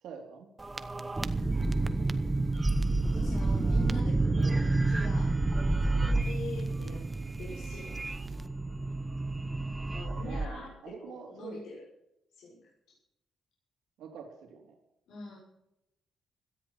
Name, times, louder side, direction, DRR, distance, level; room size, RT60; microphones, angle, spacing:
voice 1, 0.0-0.5 10.2-11.6 14.0-14.8, right 6 dB, 85° right, 2 dB, 3.3 m, -45 dB
sound 1, 0.6-10.5, right 2 dB, 15° right, 0.9 m, -29 dB
voice 2, 3.0-7.0 7.4-8.4 9.9-11.7 12.3-12.7 15.1-15.4, left 3 dB, 85° left, -5 dB, 6.2 m, -45 dB
17.5 x 13.5 x 5.7 m, 0.86 s
cardioid pair, 150°, 0 cm